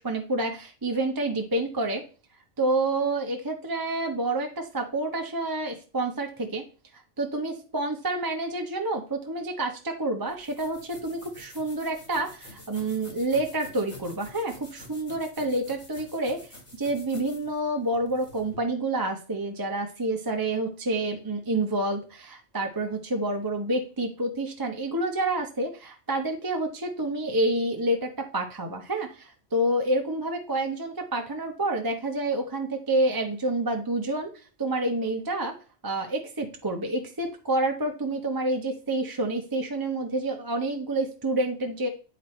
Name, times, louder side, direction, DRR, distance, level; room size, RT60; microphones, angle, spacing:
voice 1, 0.0-2.0 2.6-6.6 7.2-16.4 16.7-35.5 35.8-41.9, right 2 dB, 20° right, 3 dB, 0.7 m, -28 dB
sound 1, 10.3-18.6, left 1 dB, 25° left, 1.7 m, -48 dB
9.3 x 4.0 x 4.3 m, 0.36 s
omnidirectional pair, 1.3 m